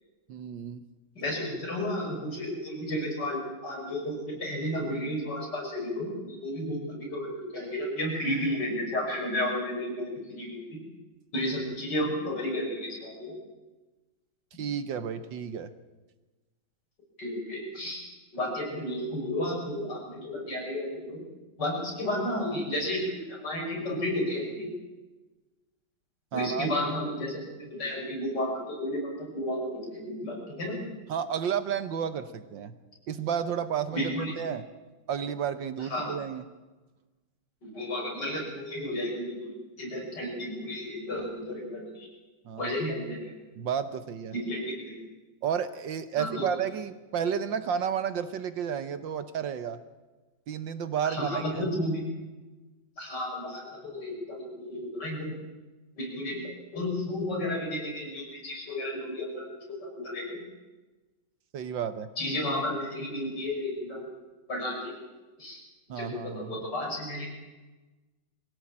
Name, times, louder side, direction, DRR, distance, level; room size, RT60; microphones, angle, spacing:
voice 1, 0.3-0.8 14.6-15.7 26.3-26.7 31.1-32.7 33.1-34.6 35.1-36.4 42.4-42.7 43.6-44.3 45.4-49.8 50.5-51.7 61.5-62.1 65.9-66.7, right 8 dB, 70° right, 11 dB, 1.6 m, -32 dB
voice 2, 1.2-10.8 11.3-13.4 17.2-18.0 18.3-21.2 21.6-24.7 26.3-30.8 33.9-34.3 35.9-36.1 37.6-42.1 42.6-43.3 44.3-45.0 46.2-46.5 51.0-52.1 53.0-55.4 56.0-60.4 62.2-64.1 64.5-65.0 65.4-65.6 66.0-67.3, left 1 dB, 55° left, -1 dB, 6.5 m, -32 dB
23.0 x 16.5 x 8.7 m, 1.2 s
omnidirectional pair, 2.2 m